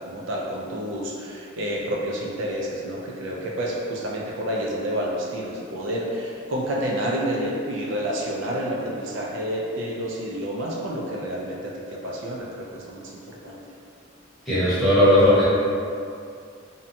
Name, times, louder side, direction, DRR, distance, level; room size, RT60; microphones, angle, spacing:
voice 1, 0.0-13.6, equal, 70° right, -3 dB, 0.4 m, -29 dB
voice 2, 14.5-15.4, left 1 dB, ahead, -13 dB, 0.9 m, -17 dB
2.7 x 2.2 x 2.6 m, 2.4 s
head